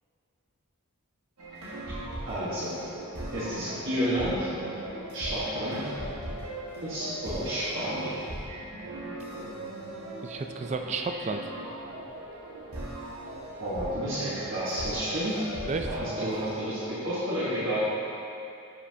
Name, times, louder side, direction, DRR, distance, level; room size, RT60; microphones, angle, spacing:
sound 1, 1.4-16.6, right 1 dB, 85° right, 1.5 m, -39 dB
voice 1, 2.3-2.7 3.3-4.5 5.1-5.9 6.8-8.1 13.6-15.4 15.8-17.8, equal, 55° right, -11 dB, 1.4 m, -30 dB
voice 2, 10.2-11.5 15.7-16.3, right 3 dB, 30° right, 5 dB, 0.4 m, -32 dB
9.8 x 5.8 x 2.8 m, 2.7 s
head